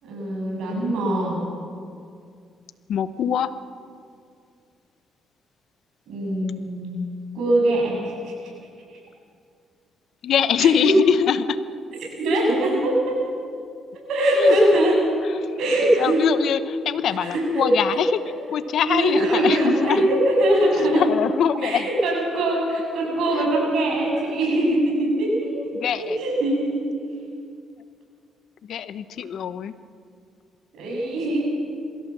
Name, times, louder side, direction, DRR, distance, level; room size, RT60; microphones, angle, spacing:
voice 1, 0.0-1.4 6.1-7.0 7.3-8.3 10.6-11.0 12.2-13.2 13.9-15.0 15.6-16.3 17.2-18.0 18.9-21.1 21.6-25.7 26.0-26.8 30.7-31.4, right 1 dB, 75° right, -2 dB, 7.3 m, -22 dB
voice 2, 2.9-3.5 10.2-11.6 14.4-14.6 15.2-15.6 16.0-18.2 18.5-20.1 20.9-21.8 23.3-23.4 25.7-26.2 28.6-29.7, left 8 dB, 70° left, 13 dB, 0.8 m, -23 dB
23.0 x 16.0 x 7.2 m, 2.3 s
cardioid pair, 90°, 0 cm